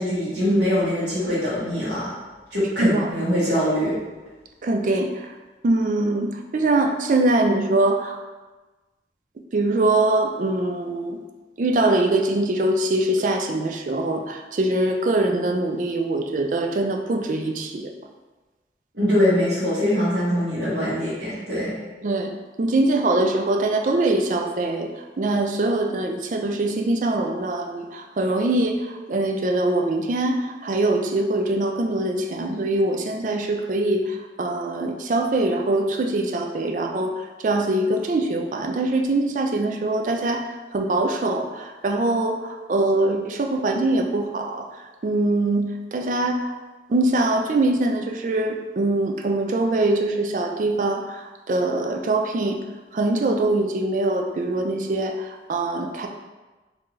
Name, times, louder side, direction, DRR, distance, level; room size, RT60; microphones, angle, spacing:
voice 1, 0.0-2.1 2.5-4.0 18.9-21.8, equal, 80° right, -12 dB, 1.4 m, -22 dB
voice 2, 2.8-3.1 4.6-5.1 5.6-8.2 9.5-11.2 11.6-17.9 22.0-22.3 22.6-24.9 25.2-44.7 45.0-46.5 46.9-52.6 52.9-56.1, right 2 dB, 45° right, 3 dB, 0.4 m, -23 dB
4.3 x 2.7 x 3.1 m, 1.2 s
head